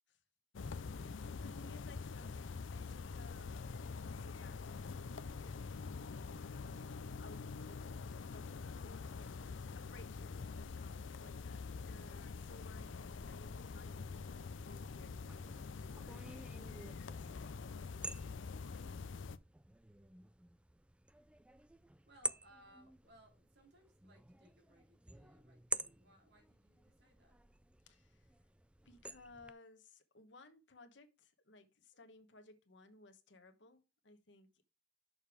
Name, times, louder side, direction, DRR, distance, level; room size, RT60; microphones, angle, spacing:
sound 1, 0.5-19.4, left 4 dB, 90° left, 0.5 m, -45 dB
voice 1, 0.9-6.1 6.4-7.9 8.3-18.8 27.8-28.3 28.8-34.6, left 2 dB, 70° left, 1.2 m, -61 dB
sound 2, 14.9-29.5, right 2 dB, 5° right, 0.3 m, -49 dB
voice 2, 22.1-27.4, equal, 65° right, 3.1 m, -65 dB
6.6 x 5.4 x 4.8 m
head